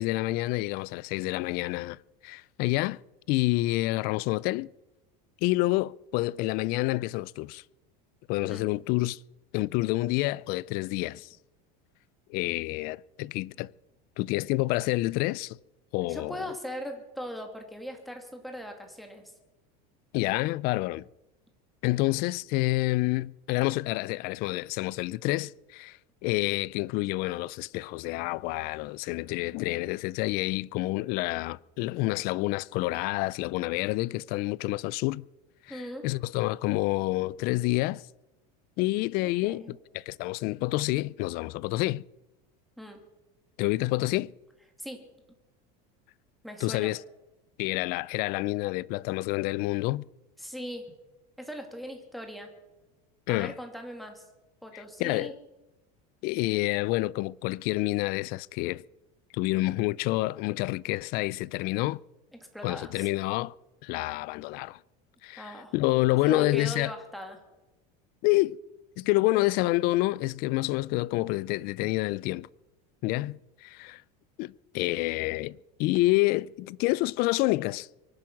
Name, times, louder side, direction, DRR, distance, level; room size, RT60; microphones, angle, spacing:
voice 1, 0.0-3.0 3.3-4.7 5.4-7.6 8.3-9.2 9.5-11.3 12.3-13.7 14.2-15.6 15.9-16.5 20.1-21.0 21.8-35.3 35.7-38.0 38.8-42.0 43.6-44.3 46.6-47.0 47.6-50.0 53.3-53.6 54.7-55.4 56.2-58.8 59.3-62.0 62.6-63.5 63.8-64.8 65.2-66.9 68.2-68.6 69.0-72.5 73.0-74.0 74.4-77.9, left 19 dB, 45° left, 0.4 m, -28 dB
voice 2, 16.1-19.2 35.7-36.1 39.2-39.8 42.8-43.0 44.8-45.1 46.4-46.9 50.4-50.9 51.4-52.5 53.3-54.3 54.6-55.3 62.5-63.1 65.4-65.7 66.3-67.4, equal, ahead, 2.3 m, -39 dB
23.5 x 8.7 x 5.9 m
supercardioid pair, 150°, 21 cm